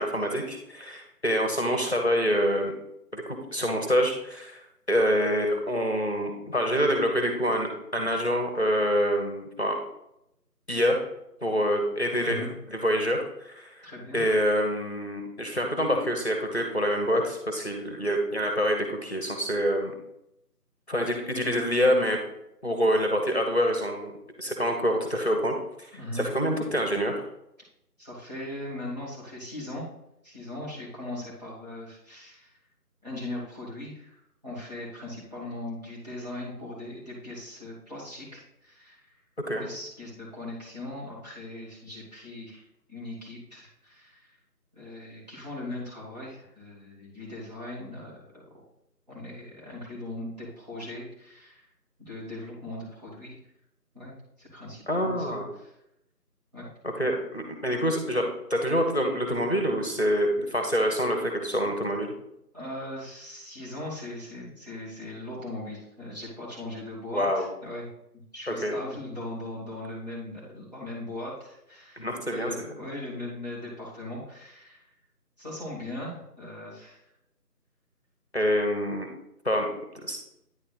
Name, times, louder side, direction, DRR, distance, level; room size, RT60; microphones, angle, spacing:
voice 1, 0.0-2.7 3.1-4.6 4.9-9.7 10.7-11.0 11.4-13.9 14.1-19.9 20.9-22.2 22.6-24.1 24.4-25.9 26.1-27.2 39.5-39.7 54.9-55.5 56.8-62.1 67.1-67.5 68.5-68.7 72.0-72.7 78.3-79.1 79.4-79.7 80.0-80.2, equal, 40° left, 3 dB, 1.1 m, -26 dB
voice 2, 12.2-12.5 13.8-14.2 25.9-26.3 28.0-29.9 30.2-32.6 33.0-39.1 39.6-42.6 42.9-44.3 44.7-48.4 49.1-51.7 52.0-53.4 53.9-55.8 56.5-56.7 62.5-67.9 68.1-74.9 75.4-77.0, left 1 dB, 25° right, -8 dB, 2.4 m, -39 dB
9.7 x 4.1 x 4.0 m, 0.82 s
figure-of-eight pair, 170°, 48 cm